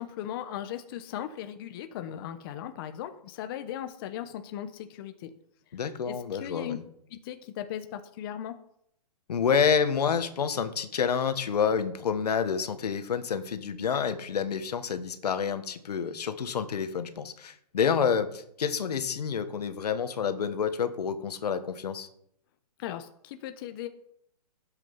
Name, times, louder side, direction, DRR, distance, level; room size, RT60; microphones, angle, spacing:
voice 1, 0.0-5.3 6.0-6.8 7.1-8.6 22.8-23.9, left 11 dB, 35° left, 8 dB, 0.9 m, -38 dB
voice 2, 5.7-6.8 9.3-22.1, left 7 dB, 75° left, 10 dB, 1.5 m, -28 dB
12.5 x 8.3 x 5.6 m, 0.73 s
hypercardioid pair, 155°, 20 cm